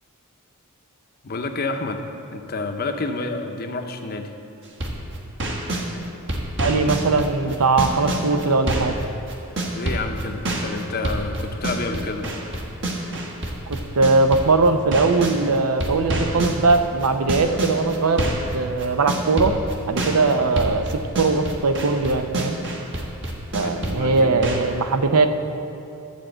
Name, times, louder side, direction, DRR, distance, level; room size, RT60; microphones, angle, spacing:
voice 1, 1.2-2.0 2.3-4.3 9.7-12.3 23.6-24.4, left 3 dB, 45° left, 5 dB, 0.7 m, -29 dB
sound 1, 4.6-5.9 6.3-9.0 9.3-15.4 15.8-24.6, right 1 dB, 55° right, 1.4 m, -26 dB
voice 2, 6.6-8.9 13.7-18.2 18.5-19.5 19.9-20.9 21.2-22.6 23.5-25.3, right 3 dB, 80° right, 7 dB, 0.7 m, -20 dB
13.0 x 4.4 x 7.8 m, 2.8 s
head